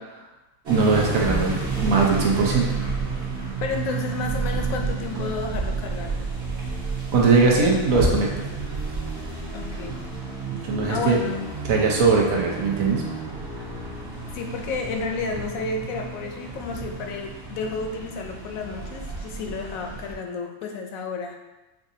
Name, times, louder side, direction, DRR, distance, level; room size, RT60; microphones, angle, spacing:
sound 1, 0.7-20.1, right 4 dB, 55° right, 1.3 m, -30 dB
voice 1, 0.7-1.5 1.8-2.7 7.1-8.3 10.5-11.2 11.7-13.0, right 4 dB, 80° right, -2 dB, 1.2 m, -20 dB
voice 2, 3.6-6.3 9.5-10.0 10.9-11.5 14.3-21.4, left 4 dB, 85° left, 3 dB, 1.0 m, -31 dB
5.7 x 2.5 x 2.7 m, 1.0 s
omnidirectional pair, 1.4 m